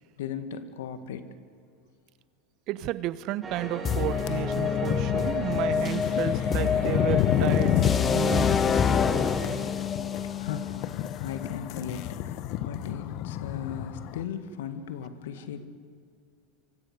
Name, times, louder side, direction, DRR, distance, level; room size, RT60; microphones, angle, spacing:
voice 1, 0.2-1.3 10.2-15.7, left 8 dB, 75° left, 1.7 m, -37 dB
voice 2, 2.7-8.9, right 14 dB, 50° right, 0.9 m, -32 dB
sound 1, 3.4-9.6, right 3 dB, 20° right, 7.2 m, -37 dB
sound 2, 3.8-14.2, left 12 dB, 55° left, 1.1 m, -31 dB
sound 3, 3.8-11.7, left 7 dB, 30° left, 1.1 m, -27 dB
25.0 x 24.5 x 6.6 m
hypercardioid pair, 95°, 0 cm